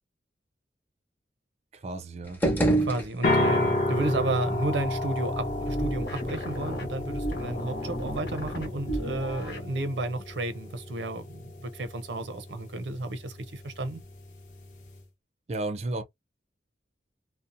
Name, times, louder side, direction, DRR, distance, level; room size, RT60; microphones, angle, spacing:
voice 1, 1.7-2.4 15.5-16.0, right 2 dB, 35° right, 0.4 m, -33 dB
sound 1, 2.2-3.7, right 2 dB, 10° left, 0.6 m, -26 dB
voice 2, 2.8-14.0, right 2 dB, 90° right, 0.6 m, -32 dB
sound 2, 3.2-15.0, left 2 dB, 45° left, 0.8 m, -32 dB
sound 3, 4.0-9.7, equal, 70° left, 1.0 m, -35 dB
2.7 x 2.1 x 2.5 m
head